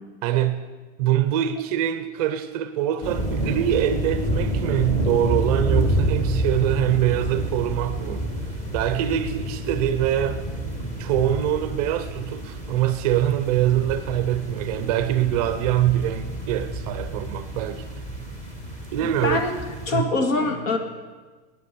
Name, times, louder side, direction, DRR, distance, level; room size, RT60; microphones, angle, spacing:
voice 1, 0.2-0.6 1.0-8.3 8.7-10.4 11.0-18.1 18.9-19.4 19.9-20.0, right 11 dB, 30° right, 11 dB, 0.4 m, -24 dB
sound 1, 3.0-19.9, right 1 dB, 20° left, 1.6 m, -29 dB
voice 2, 19.0-19.5 19.9-20.8, left 3 dB, 80° left, 5 dB, 2.0 m, -24 dB
9.6 x 9.5 x 6.7 m, 1.3 s
supercardioid pair, 160°, 39 cm